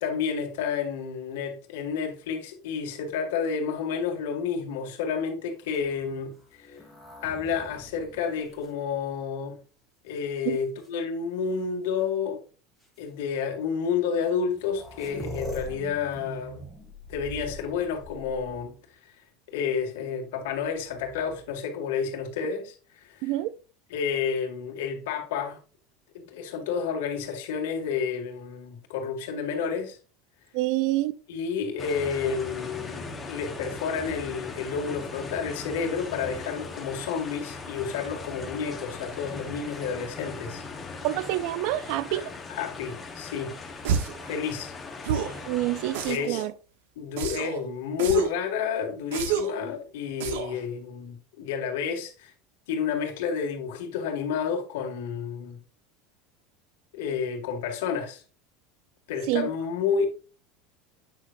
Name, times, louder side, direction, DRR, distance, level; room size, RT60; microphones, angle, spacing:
voice 1, 0.0-6.8 7.2-9.6 10.0-12.4 13.0-16.7 17.1-18.8 19.0-19.1 19.5-23.4 23.9-25.6 26.1-30.0 31.3-40.6 40.9-41.0 42.1-43.6 44.2-44.7 46.1-46.4 47.0-52.3 52.7-55.6 56.9-58.2 59.1-60.1, left 6 dB, 85° left, 2.0 m, -30 dB
sound 1, 5.6-9.5 10.2-10.9 12.0-12.1 12.8-13.0 14.1-14.2 14.4-18.9 20.8-21.5, left 1 dB, 5° right, 2.3 m, -43 dB
voice 2, 23.2-23.5 30.5-31.1 41.0-42.2 45.5-46.5 59.3-59.5, right 16 dB, 55° right, 0.4 m, -27 dB
sound 2, 31.8-46.2, left 4 dB, 15° left, 1.1 m, -39 dB
sound 3, 43.8-44.2 45.0-45.4 45.9-46.4 47.2-47.6 48.0-48.4 49.1-49.6 50.2-50.6, right 8 dB, 90° right, 1.1 m, -29 dB
8.9 x 5.7 x 2.6 m
supercardioid pair, 170°, 0 cm